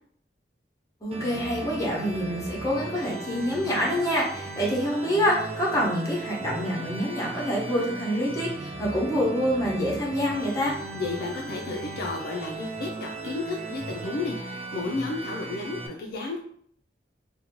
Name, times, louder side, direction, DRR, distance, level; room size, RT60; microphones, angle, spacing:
voice 1, 1.0-10.7, equal, 20° left, -4 dB, 0.8 m, -26 dB
sound 1, 1.1-15.9, right 3 dB, 35° right, 0.4 m, -37 dB
voice 2, 10.9-16.4, left 3 dB, 60° left, 1 dB, 0.3 m, -32 dB
2.6 x 2.1 x 2.9 m, 0.63 s
head